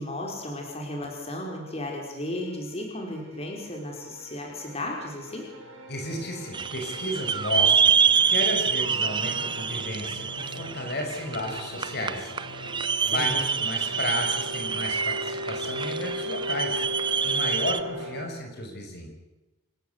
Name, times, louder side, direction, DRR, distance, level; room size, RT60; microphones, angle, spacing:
voice 1, 0.0-5.5 13.0-13.3, left 1 dB, 30° left, 0 dB, 5.1 m, -34 dB
sound 1, 2.1-18.2, left 1 dB, 70° right, 5.8 m, -39 dB
voice 2, 5.9-7.9 8.3-12.3 12.8-19.1, left 1 dB, 55° left, 4 dB, 5.4 m, -33 dB
sound 2, 6.5-17.8, right 6 dB, 25° right, 0.9 m, -26 dB
28.0 x 16.5 x 8.3 m, 1.0 s
head